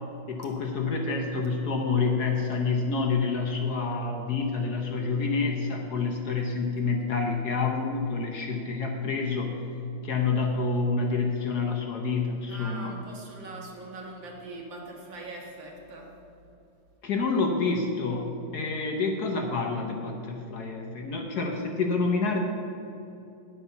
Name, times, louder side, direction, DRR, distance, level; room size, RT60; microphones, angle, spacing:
voice 1, 0.3-9.5 10.0-12.9 17.0-22.4, left 4 dB, 60° left, 2 dB, 1.3 m, -28 dB
voice 2, 12.5-16.1, right 2 dB, 65° right, -1 dB, 2.3 m, -42 dB
10.0 x 8.1 x 5.7 m, 2.9 s
omnidirectional pair, 2.2 m